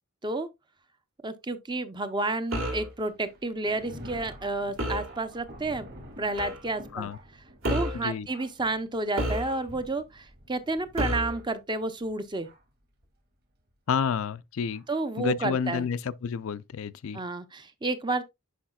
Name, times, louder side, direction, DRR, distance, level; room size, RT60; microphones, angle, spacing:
voice 1, 1.2-5.9 6.2-7.1 7.7-12.5 14.9-15.9 17.1-18.2, right 2 dB, 20° right, 0.6 m, -31 dB
sound 1, 2.5-2.9 4.8-5.1 6.4-6.6 7.6-8.1 9.2-9.8 11.0-11.4, equal, 60° right, 2.1 m, -30 dB
Thunder, 2.9-12.8 13.6-13.7 14.7-14.8 15.6-15.8, equal, 45° right, 2.7 m, -49 dB
voice 2, 13.9-14.8 15.2-17.2, left 6 dB, 70° left, 0.4 m, -30 dB
10.0 x 4.9 x 2.3 m
head